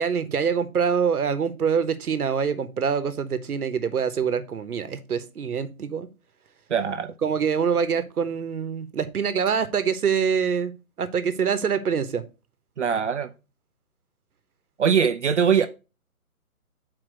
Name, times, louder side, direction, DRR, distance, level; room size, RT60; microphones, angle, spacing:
voice 1, 0.0-6.1 7.2-10.7 11.0-12.2, right 6 dB, 80° right, 1.1 m, -25 dB
voice 2, 6.7-7.1 12.8-13.3 14.8-15.7, right 7 dB, 55° right, 0.6 m, -22 dB
6.2 x 4.3 x 5.0 m
hypercardioid pair, 155°, 44 cm